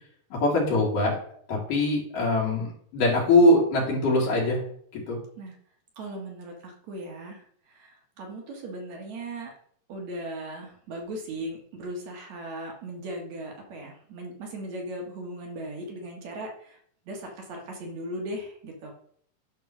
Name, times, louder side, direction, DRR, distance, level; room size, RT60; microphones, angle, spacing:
voice 1, 0.3-1.2 1.5-2.7 2.9-4.6 4.9-5.2, left 1 dB, 75° left, -4 dB, 4.0 m, -22 dB
voice 2, 6.0-9.5 9.9-16.8 17.1-18.9, right 1 dB, 60° right, 1 dB, 2.5 m, -38 dB
10.0 x 3.8 x 6.0 m, 0.63 s
omnidirectional pair, 3.8 m